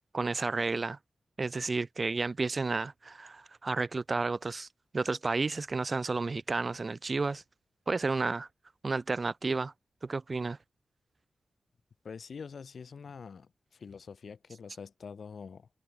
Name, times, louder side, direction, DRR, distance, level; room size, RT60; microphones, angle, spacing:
voice 1, 0.1-1.0 1.4-4.7 4.9-7.4 7.9-8.5 8.8-9.7 10.0-10.6, right 3 dB, 50° right, 0.4 m, -31 dB
voice 2, 12.0-15.7, left 5 dB, 70° left, 3.9 m, -45 dB
cardioid pair, 45°, 0 cm